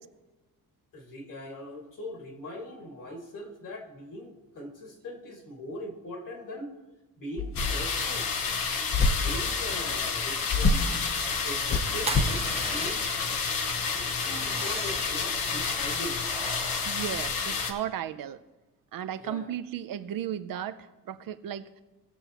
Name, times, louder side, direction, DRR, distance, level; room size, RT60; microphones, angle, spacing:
voice 1, 0.9-6.7 7.2-8.3 9.1-10.9 11.4-13.1 13.9-16.2 19.2-19.5, left 1 dB, 65° left, 1 dB, 2.1 m, -41 dB
sound 1, 7.4-8.0 8.9-9.4 10.5-11.0 11.7-12.4, left 3 dB, 40° left, 0.8 m, -26 dB
sound 2, 7.6-17.7, left 5 dB, 85° left, 1.0 m, -30 dB
sound 3, 12.0-13.3 14.3-15.3 16.2-17.8, right 3 dB, 20° right, 0.5 m, -39 dB
voice 2, 16.9-18.4 18.9-21.8, right 10 dB, 80° right, 11 dB, 0.6 m, -35 dB
18.5 x 6.9 x 2.9 m, 1.1 s
wide cardioid pair, 135°, 34 cm